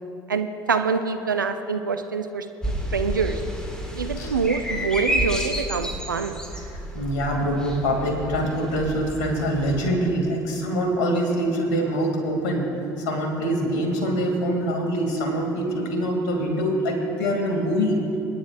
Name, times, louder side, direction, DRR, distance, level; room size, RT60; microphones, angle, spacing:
voice 1, 0.3-2.5 2.9-3.4 3.9-6.4, right 5 dB, 80° right, 7 dB, 0.6 m, -25 dB
sound 1, 2.6-9.9, equal, 5° left, 2.3 m, -30 dB
voice 2, 6.9-12.7 13.0-18.0, equal, 60° left, 2 dB, 2.6 m, -24 dB
27.5 x 10.0 x 2.6 m, 2.9 s
figure-of-eight pair, 60°, 10 cm